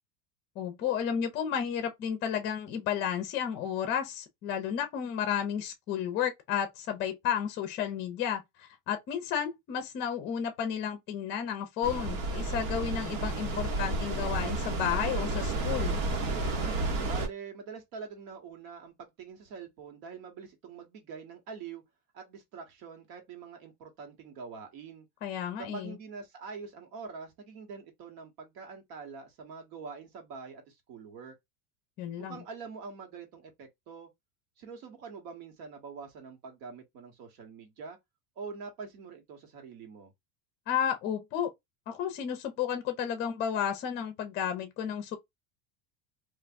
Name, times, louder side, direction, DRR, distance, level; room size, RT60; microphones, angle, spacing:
voice 1, 0.6-15.9 25.2-26.0 32.0-32.4 40.7-41.5 41.9-45.2, left 8 dB, 25° left, 0.5 m, -32 dB
sound 1, 11.8-17.3, right 2 dB, 85° right, 1.3 m, -31 dB
voice 2, 17.0-21.8 22.1-25.1 25.6-31.3 32.2-34.1 34.6-38.0 38.3-40.1, right 5 dB, 65° right, 1.4 m, -45 dB
3.3 x 2.5 x 2.5 m
supercardioid pair, 170°, 43 cm